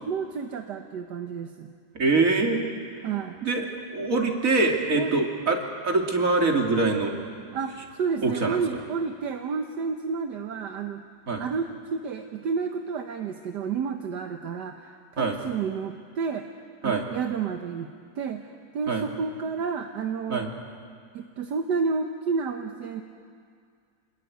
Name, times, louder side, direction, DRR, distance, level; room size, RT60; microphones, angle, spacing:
voice 1, 0.0-1.7 3.0-3.4 4.9-5.2 7.5-11.0 11.4-16.4 16.8-17.9 18.2-20.5 21.1-23.0, right 5 dB, 70° right, 5 dB, 1.6 m, -30 dB
voice 2, 1.9-2.6 3.4-3.7 3.9-7.2 8.2-8.6 11.3-11.4 15.2-15.4 16.8-17.0 18.9-19.0 20.3-20.5, right 3 dB, 45° right, 2 dB, 2.9 m, -24 dB
27.5 x 21.0 x 9.3 m, 2.2 s
omnidirectional pair, 1.9 m